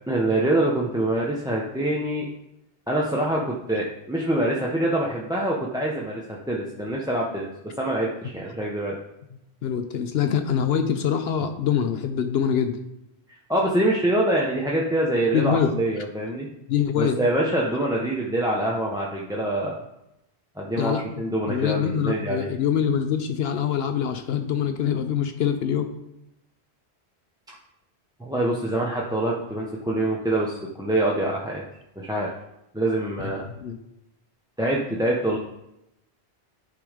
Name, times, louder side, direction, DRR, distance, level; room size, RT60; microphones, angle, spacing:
voice 1, 0.1-2.3 2.9-6.2 6.5-9.0 13.5-16.5 17.0-19.8 20.6-22.5 28.2-31.6 32.0-32.3 32.7-33.4 34.6-35.4, right 1 dB, 5° right, -4 dB, 0.7 m, -25 dB
voice 2, 9.6-12.8 15.3-15.7 16.7-17.2 20.8-21.0 21.5-25.9 33.4-33.8, left 8 dB, 70° left, 7 dB, 0.9 m, -24 dB
10.0 x 3.8 x 5.0 m, 0.86 s
omnidirectional pair, 1.1 m